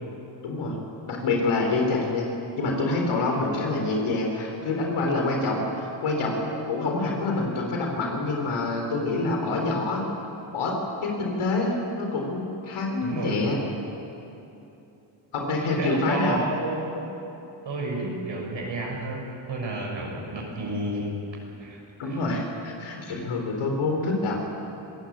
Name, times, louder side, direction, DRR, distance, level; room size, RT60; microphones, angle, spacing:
voice 1, 0.4-0.8 1.1-2.3 2.6-10.0 10.5-13.6 15.3-16.4 22.0-24.4, left 2 dB, 80° left, 1 dB, 4.1 m, -26 dB
voice 2, 13.0-13.5 15.8-17.1 17.6-21.1 21.6-22.2, right 2 dB, 60° right, -2 dB, 6.5 m, -31 dB
26.5 x 15.0 x 8.8 m, 2.9 s
cardioid pair, 70°, 49 cm